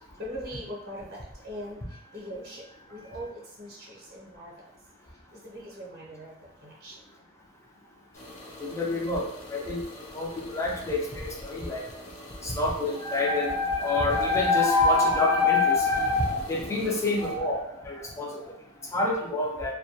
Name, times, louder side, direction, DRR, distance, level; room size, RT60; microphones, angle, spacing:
voice 1, 0.0-4.7 5.3-7.0 18.6-19.0, equal, 50° right, -5 dB, 0.6 m, -42 dB
sound 1, 8.1-17.3, left 1 dB, 85° left, 0.6 m, -45 dB
voice 2, 8.6-9.8 10.1-11.8 12.4-18.5 18.9-19.7, left 3 dB, 15° left, -1 dB, 0.4 m, -26 dB
2.2 x 2.2 x 2.7 m, 0.75 s
head